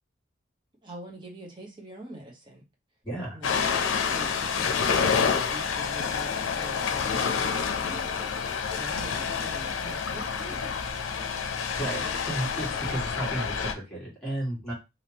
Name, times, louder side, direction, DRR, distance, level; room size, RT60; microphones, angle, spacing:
voice 1, 0.8-2.6 3.3-3.6 4.1-10.8, right 1 dB, 25° right, -1 dB, 1.0 m, -44 dB
voice 2, 3.0-3.4 11.8-14.7, right 1 dB, 5° left, -6 dB, 1.9 m, -33 dB
Ocean, 3.4-13.7, left 6 dB, 80° left, 0.6 m, -28 dB
3.5 x 2.8 x 2.9 m, 0.24 s
head